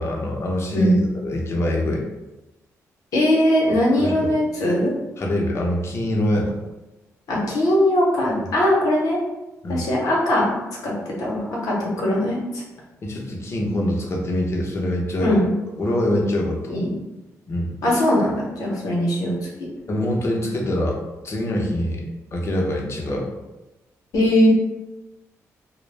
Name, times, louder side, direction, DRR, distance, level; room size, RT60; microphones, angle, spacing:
voice 1, 0.0-2.0 4.0-4.3 5.2-6.6 8.4-8.5 9.6-9.9 13.0-15.4 15.8-16.7 17.5-17.7 19.9-21.0 21.2-22.0 22.3-23.3, left 1 dB, 50° left, -1 dB, 0.6 m, -24 dB
voice 2, 3.1-4.9 7.3-9.2 9.7-10.5 10.8-12.6 15.2-15.5 16.7-16.9 17.8-19.4 24.1-24.5, left 1 dB, 80° left, -3 dB, 0.8 m, -20 dB
2.2 x 2.0 x 3.2 m, 1.0 s
cardioid pair, 70°, 6 cm